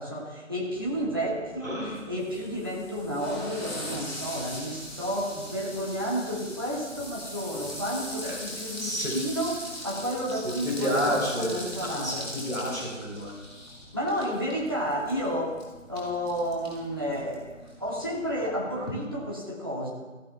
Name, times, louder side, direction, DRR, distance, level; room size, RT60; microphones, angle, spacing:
voice 1, 0.0-12.3 13.9-15.6 15.9-19.9, equal, 20° right, -5 dB, 1.5 m, -31 dB
sound 1, 0.7-18.9, left 1 dB, 5° left, 3.2 m, -41 dB
voice 2, 1.6-2.0 8.2-8.3 8.8-9.1 10.3-13.3, equal, 90° right, -2 dB, 3.8 m, -30 dB
16.5 x 13.5 x 2.3 m, 1.2 s
figure-of-eight pair, 170°, 39 cm